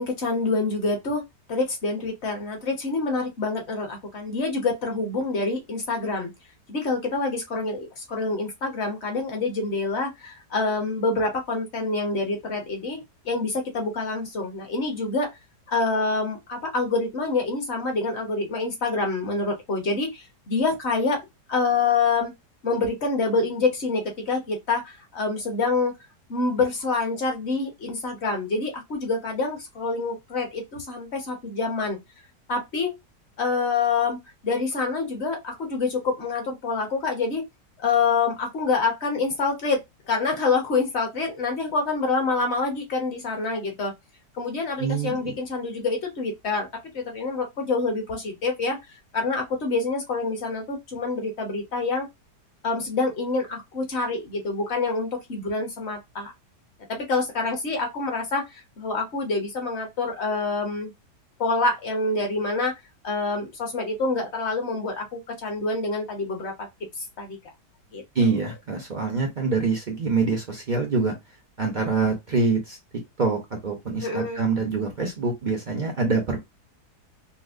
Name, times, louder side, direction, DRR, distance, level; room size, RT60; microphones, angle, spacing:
voice 1, 0.0-6.3 6.7-13.0 13.2-15.3 15.7-21.2 21.5-22.3 22.6-25.9 26.3-32.0 32.5-32.9 33.4-34.2 34.4-37.4 37.8-39.8 40.1-43.9 44.4-46.7 46.9-48.8 49.1-52.1 52.6-56.3 56.9-60.9 61.4-62.7 63.0-66.7 67.2-67.4 67.9-68.0 74.0-74.4, left 3 dB, 50° left, 1.0 m, -26 dB
voice 2, 44.8-45.3 68.1-71.1 71.6-72.8 73.2-76.4, right 4 dB, 55° right, 0.5 m, -25 dB
4.1 x 2.0 x 2.5 m
omnidirectional pair, 1.8 m